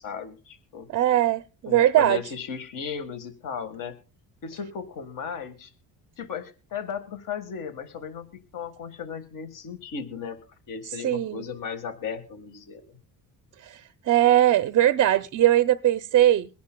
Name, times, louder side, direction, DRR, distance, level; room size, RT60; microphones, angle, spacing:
voice 1, 0.0-0.9 1.7-4.0 4.4-5.7 6.2-8.3 8.5-10.4 10.7-13.0, left 6 dB, 55° left, 1.6 m, -36 dB
voice 2, 0.9-2.2 11.0-11.4 13.6-13.8 14.1-16.5, right 12 dB, 40° right, 0.5 m, -20 dB
23.0 x 10.5 x 2.2 m
cardioid pair, 110°, 39 cm